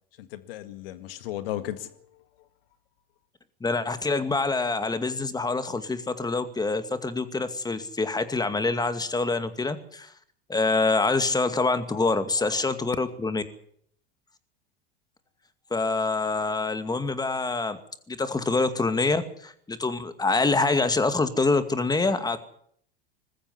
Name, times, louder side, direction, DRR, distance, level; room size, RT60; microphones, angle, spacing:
voice 1, 0.2-2.0 11.9-12.1 12.4-12.8, left 13 dB, 70° left, 12 dB, 2.0 m, -36 dB
voice 2, 3.6-10.1 10.5-13.4 15.7-17.8 18.1-22.4, left 3 dB, 15° left, 10 dB, 2.3 m, -26 dB
20.5 x 14.5 x 9.6 m, 0.65 s
hypercardioid pair, 95°, 30 cm